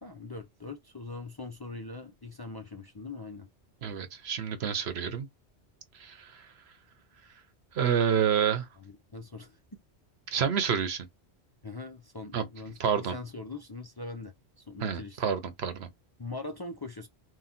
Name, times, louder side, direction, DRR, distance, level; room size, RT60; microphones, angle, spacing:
voice 1, 0.0-3.5 4.9-5.0 8.8-9.6 11.6-15.2 16.2-17.1, left 3 dB, 30° left, 0.5 m, -42 dB
voice 2, 3.8-5.3 6.0-6.3 7.7-8.7 10.3-11.1 12.3-12.5 12.8-13.1 14.8-15.9, right 8 dB, 70° right, 1.0 m, -28 dB
3.8 x 2.3 x 4.2 m
omnidirectional pair, 1.1 m